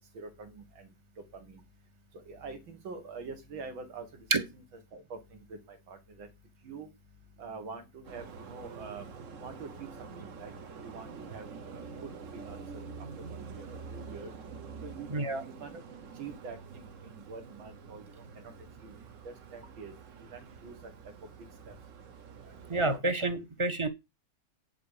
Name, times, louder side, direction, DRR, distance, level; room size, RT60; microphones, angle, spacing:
voice 1, 0.1-0.9 1.4-1.6 2.1-4.3 4.5-4.6 4.9-6.3 6.6-6.9 7.4-9.1 9.4-12.8 13.3-14.3 14.8-15.8 16.2-18.5 18.8-19.0 19.2-19.9 20.3-20.9 21.7-21.8 22.4-23.0, right 4 dB, 80° right, 2.5 m, -46 dB
sound 1, 8.0-23.0, right 5 dB, 50° right, 1.1 m, -47 dB
voice 2, 15.1-15.4 22.7-23.9, right 2 dB, 25° right, 0.6 m, -28 dB
9.9 x 5.1 x 4.9 m
omnidirectional pair, 2.1 m